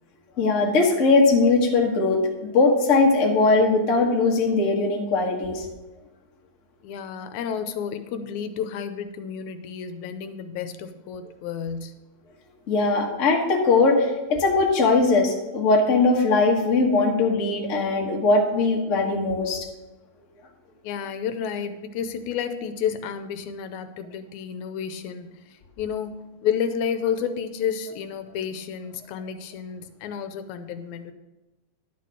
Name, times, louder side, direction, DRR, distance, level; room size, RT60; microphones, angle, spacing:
voice 1, 0.4-5.7 12.7-19.7, left 3 dB, 45° left, -1 dB, 1.0 m, -20 dB
voice 2, 6.8-12.0 20.8-31.1, left 7 dB, 85° left, 9 dB, 2.0 m, -31 dB
11.0 x 4.3 x 6.3 m, 1.1 s
omnidirectional pair, 3.4 m